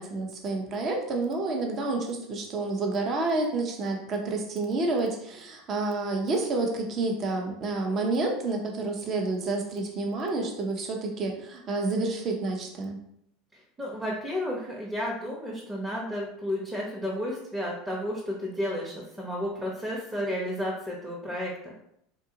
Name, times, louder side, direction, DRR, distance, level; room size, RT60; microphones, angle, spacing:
voice 1, 0.0-13.0, right 3 dB, 40° right, 1 dB, 0.7 m, -29 dB
voice 2, 13.8-21.7, left 1 dB, 10° right, -5 dB, 0.8 m, -32 dB
3.8 x 2.3 x 2.8 m, 0.75 s
hypercardioid pair, 85°, 0 cm